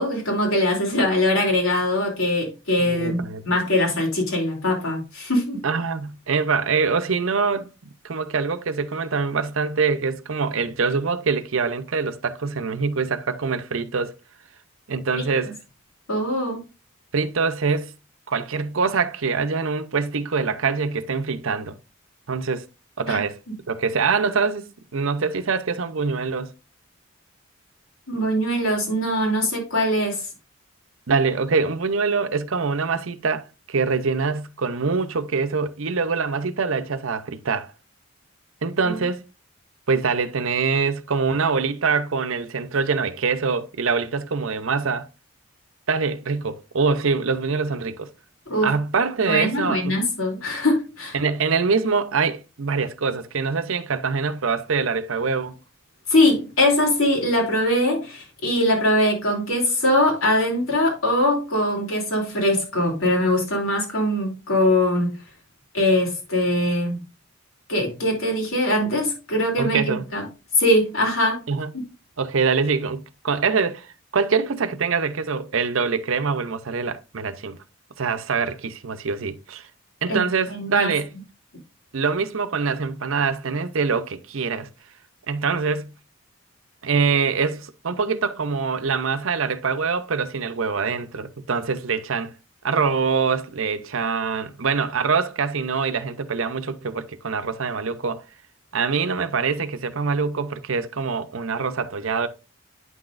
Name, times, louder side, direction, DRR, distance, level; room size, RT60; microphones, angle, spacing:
voice 1, 0.0-5.6 16.1-16.6 23.1-23.2 28.1-30.2 38.8-38.9 48.5-48.7 49.2-51.2 56.1-65.1 65.7-67.0 67.7-70.2 70.6-71.4 80.1-80.2 80.5-80.9, left 1 dB, 75° left, 3.2 m, -22 dB
voice 2, 2.8-3.4 5.6-7.7 8.0-14.1 14.9-15.5 17.1-17.9 18.3-21.8 22.3-22.7 23.0-23.4 23.7-26.5 31.1-37.7 38.6-39.2 39.9-45.1 45.9-48.1 48.6-50.0 51.1-55.6 69.6-70.0 71.5-71.7 72.2-77.6 78.0-79.7 80.0-81.1 81.9-84.7 85.3-85.9 86.8-92.3 92.6-98.2 98.7-102.3, right 5 dB, 70° right, 0.7 m, -24 dB
9.3 x 6.0 x 2.5 m
head